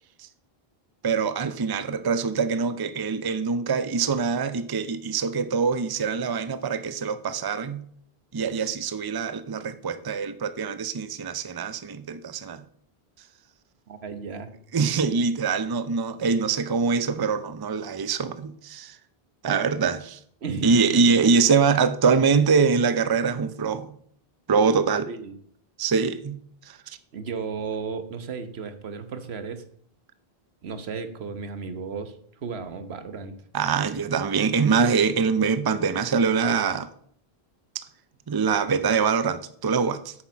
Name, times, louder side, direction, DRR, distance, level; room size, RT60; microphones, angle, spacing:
voice 1, 1.0-7.8 8.3-12.6 14.7-19.0 19.4-20.2 20.6-23.9 24.5-25.1 25.8-26.4 26.7-26.8 33.5-36.9 38.3-40.1, right 5 dB, 30° right, 0.5 m, -24 dB
voice 2, 13.9-14.5 20.4-20.7 21.0-21.1 25.1-25.3 27.1-29.6 30.6-32.2 32.4-33.4, right 5 dB, 85° right, 1.3 m, -34 dB
8.6 x 7.3 x 6.1 m
omnidirectional pair, 1.0 m